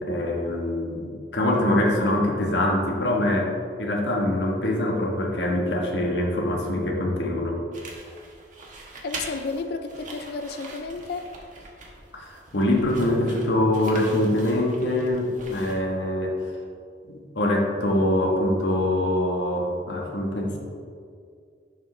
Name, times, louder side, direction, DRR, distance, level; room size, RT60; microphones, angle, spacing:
voice 1, 0.0-3.5 3.8-7.6 12.1-16.4 17.1-20.6, left 1 dB, 80° left, 0 dB, 1.3 m, -24 dB
sound 1, 7.7-16.1, right 2 dB, 45° right, 1.2 m, -42 dB
voice 2, 9.0-11.3, left 3 dB, 65° left, 8 dB, 0.4 m, -32 dB
11.0 x 5.0 x 3.2 m, 2.3 s
head